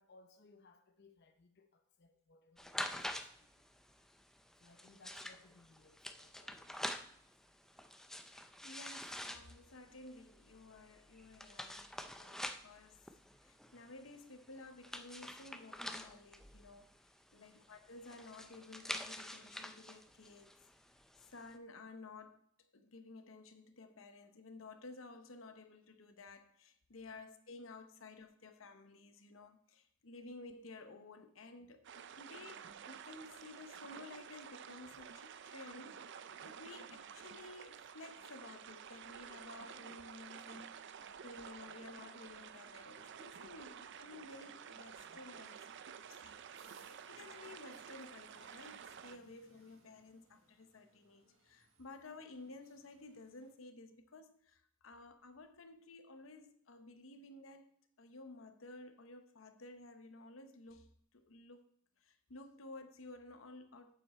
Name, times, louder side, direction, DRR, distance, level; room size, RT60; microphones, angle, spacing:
voice 1, 0.0-3.8 4.6-7.3 17.3-17.6 27.0-27.2 46.6-46.9, left 3 dB, 55° left, 0.7 m, -66 dB
sound 1, 2.6-21.5, left 1 dB, ahead, 0.5 m, -47 dB
voice 2, 8.6-13.0 13.4-16.9 17.3-20.6 21.3-22.4 22.7-40.9 41.2-45.6 46.0-57.7 58.0-61.6 62.0-63.9, left 3 dB, 85° left, 0.9 m, -54 dB
sound 2, 31.8-49.2, right 7 dB, 60° right, 0.5 m, -51 dB
sound 3, 42.7-53.5, right 3 dB, 85° right, 1.6 m, -71 dB
8.8 x 7.3 x 4.3 m
head